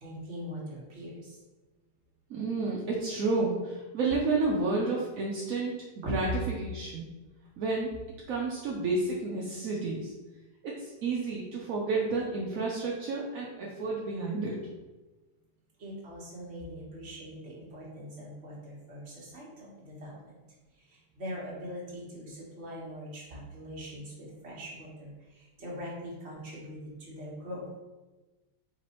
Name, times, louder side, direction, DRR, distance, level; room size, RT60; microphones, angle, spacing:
voice 1, 0.0-1.4 6.0-6.1 15.8-20.4 20.7-27.8, equal, 40° right, -5 dB, 1.4 m, -42 dB
voice 2, 2.3-6.3 6.6-7.1 7.6-7.9 8.3-10.1 10.6-14.6, right 3 dB, 65° right, -3 dB, 0.9 m, -31 dB
4.5 x 3.9 x 3.0 m, 1.2 s
omnidirectional pair, 2.0 m